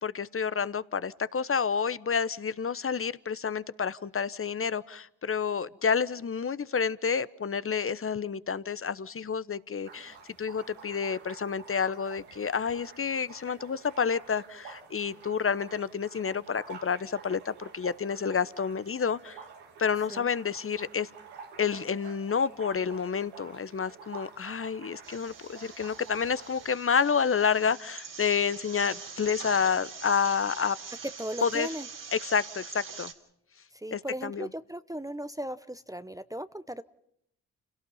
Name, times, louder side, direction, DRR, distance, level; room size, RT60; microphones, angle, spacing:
voice 1, 0.0-19.4 19.8-21.1 21.6-30.8 31.4-31.7 32.1-33.1 33.9-34.5, left 6 dB, 35° left, 18 dB, 1.0 m, -29 dB
sound 1, 9.8-26.7, right 6 dB, 85° right, 2.5 m, -49 dB
sound 2, 25.0-33.1, right 5 dB, 55° right, 3.0 m, -43 dB
voice 2, 31.0-31.9 33.7-36.8, right 1 dB, 10° right, 12 dB, 0.9 m, -37 dB
29.0 x 17.5 x 5.6 m, 0.74 s
hypercardioid pair, 40°, 39 cm